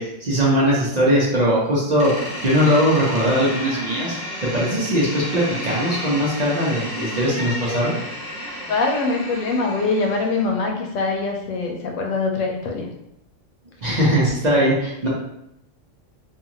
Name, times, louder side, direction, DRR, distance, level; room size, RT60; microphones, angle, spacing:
voice 1, 0.0-8.0 13.8-15.1, equal, 45° right, -6 dB, 0.7 m, -20 dB
Door, 2.0-10.5, left 1 dB, 5° right, 0.8 m, -32 dB
voice 2, 8.7-12.9, left 3 dB, 90° left, 2 dB, 1.0 m, -23 dB
2.5 x 2.4 x 2.9 m, 0.80 s
omnidirectional pair, 1.3 m